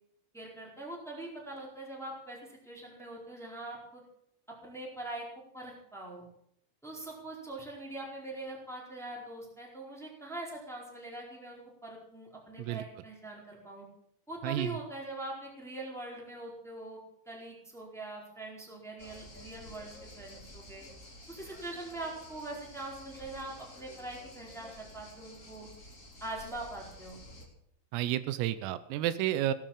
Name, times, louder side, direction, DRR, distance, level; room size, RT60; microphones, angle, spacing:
voice 1, 0.3-4.0 4.6-5.2 5.5-6.2 6.8-13.9 14.3-17.0 17.3-20.9 21.3-25.7 26.2-27.2, right 2 dB, ahead, -2 dB, 3.6 m, -43 dB
voice 2, 14.4-14.8 27.9-29.5, right 13 dB, 85° right, 13 dB, 3.5 m, -31 dB
sound 1, 19.0-27.5, left 1 dB, 25° left, 1.9 m, -51 dB
17.5 x 10.5 x 7.5 m, 0.71 s
omnidirectional pair, 5.9 m